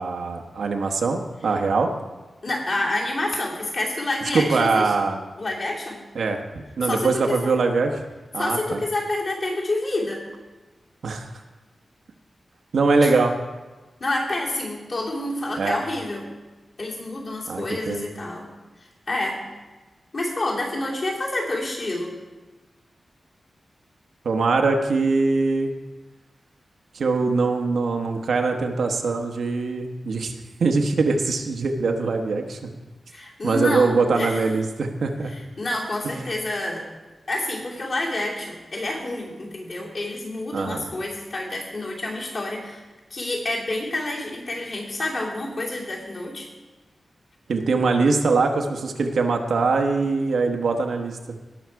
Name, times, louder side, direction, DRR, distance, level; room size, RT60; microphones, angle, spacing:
voice 1, 0.0-1.9 4.3-5.2 6.1-6.4 6.8-8.0 8.3-8.8 11.0-11.3 12.7-13.3 15.6-15.8 17.5-18.0 24.2-25.7 26.9-30.3 30.6-32.7 33.4-35.3 40.5-40.9 47.5-51.2, right 4 dB, 75° right, 4 dB, 1.1 m, -22 dB
voice 2, 2.4-4.9 5.4-6.0 6.8-7.5 8.4-10.2 13.0-13.1 14.0-16.3 16.8-18.5 18.8-19.4 20.1-22.1 33.1-34.4 35.2-36.8 37.3-42.8 43.1-46.5, left 2 dB, 45° left, -4 dB, 2.9 m, -28 dB
18.0 x 6.4 x 4.7 m, 1.2 s
wide cardioid pair, 170°, 0 cm